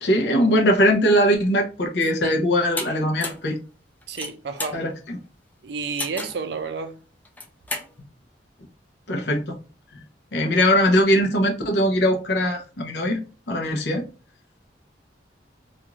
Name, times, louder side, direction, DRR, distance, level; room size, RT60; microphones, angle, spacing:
voice 1, 0.0-3.6 4.7-5.2 9.1-9.6 10.3-14.0, equal, 65° left, 0.6 m, -21 dB
sound 1, 2.8-2.9 3.2-3.5 4.0-4.8 6.0-6.4 7.2-7.9, left 2 dB, 10° left, 0.4 m, -31 dB
voice 2, 4.1-4.8 5.6-7.0, right 5 dB, 65° right, 0.4 m, -30 dB
3.0 x 2.5 x 2.3 m
head